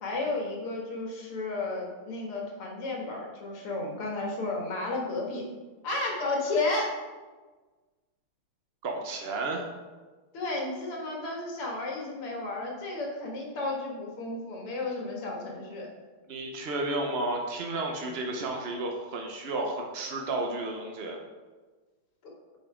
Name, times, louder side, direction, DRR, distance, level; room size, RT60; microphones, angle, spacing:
voice 1, 0.0-5.4 5.8-7.0 10.3-15.9 22.2-22.3, left 2 dB, 80° left, -1 dB, 2.6 m, -32 dB
voice 2, 8.8-9.6 16.3-21.2, right 2 dB, 60° right, 1 dB, 0.6 m, -32 dB
8.4 x 5.5 x 5.0 m, 1.3 s
omnidirectional pair, 2.4 m